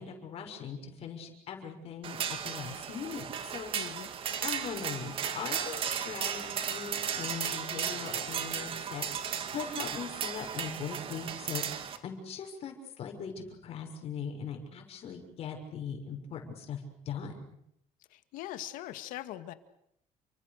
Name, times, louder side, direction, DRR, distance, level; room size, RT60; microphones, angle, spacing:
voice 1, 0.0-2.2 2.4-3.7 4.4-9.1 9.5-17.4, left 6 dB, 50° left, 4 dB, 6.4 m, -40 dB
sound 1, 2.0-12.0, right 8 dB, 45° right, 2.4 m, -35 dB
voice 2, 3.7-4.1 18.1-19.5, left 14 dB, 85° left, 10 dB, 2.1 m, -41 dB
30.0 x 25.0 x 6.7 m, 0.75 s
cardioid pair, 155°, 13 cm